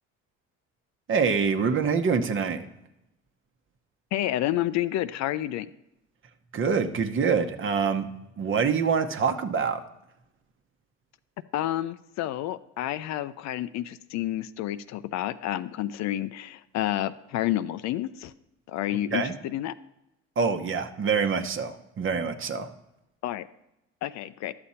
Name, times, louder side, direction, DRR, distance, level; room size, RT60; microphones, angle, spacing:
voice 1, 1.1-2.6 6.5-8.1 8.4-9.8 19.1-19.3 20.4-22.7, right 5 dB, 40° right, 7 dB, 1.0 m, -25 dB
voice 2, 4.1-5.7 11.5-18.3 18.7-19.7 23.2-23.5 24.0-24.5, left 13 dB, 60° left, 14 dB, 0.5 m, -30 dB
11.5 x 6.9 x 4.2 m, 0.90 s
supercardioid pair, 85°, 31 cm